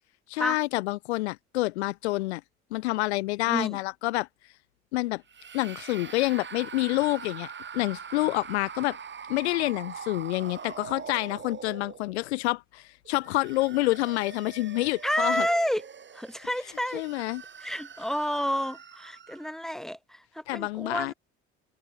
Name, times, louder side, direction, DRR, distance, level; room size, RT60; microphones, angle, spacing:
voice 1, 0.3-2.4 2.7-4.3 4.9-5.2 5.5-9.0 9.3-15.5 16.9-17.4 20.5-21.1, left 19 dB, 75° left, 0.6 m, -28 dB
voice 2, 3.5-3.8 15.0-15.8 16.1-17.0 17.6-21.1, equal, ahead, 2.6 m, -30 dB
sound 1, 5.3-12.3 13.0-19.6, right 7 dB, 35° right, 2.2 m, -43 dB
figure-of-eight pair, 50°, 33 cm